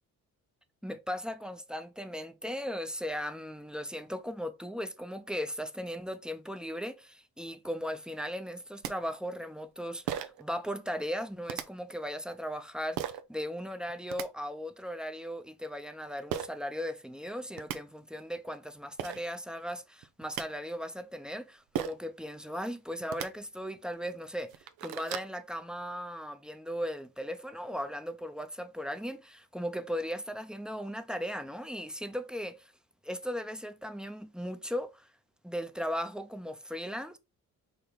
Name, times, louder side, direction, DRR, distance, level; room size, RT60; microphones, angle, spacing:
voice 1, 0.8-32.7 33.0-35.1 35.4-37.2, equal, ahead, 0.6 m, -37 dB
sound 1, 8.5-8.6 8.8-8.9 10.1-10.4 11.5-11.6 13.0-13.2 13.9-14.3 16.3-16.5 17.3-17.4 17.6-17.8 18.7-18.8 19.0-19.2 20.0-20.4 21.7-22.1 23.0-23.3 23.9-24.0 24.4-25.3, right 11 dB, 80° right, 0.6 m, -35 dB
5.1 x 2.2 x 4.2 m
supercardioid pair, 60°, 36 cm